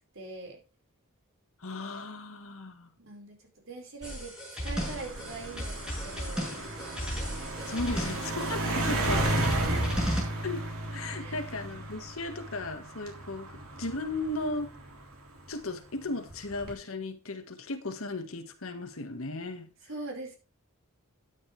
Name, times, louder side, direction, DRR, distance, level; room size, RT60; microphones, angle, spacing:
voice 1, 0.1-0.6 3.0-4.3 4.6-6.6 7.7-8.4 8.6-9.2 9.7-10.1 11.2-11.4 19.9-20.4, right 3 dB, 60° right, 4.9 m, -42 dB
voice 2, 1.6-2.9 7.7-9.6 10.4-10.6 10.9-14.7 15.5-19.7, left 2 dB, 75° left, 1.7 m, -36 dB
sound 1, 4.0-10.2, equal, 5° right, 5.9 m, -34 dB
sound 2, 4.8-15.5 16.3-16.7, right 2 dB, 80° right, 3.6 m, -34 dB
12.5 x 9.8 x 3.3 m
head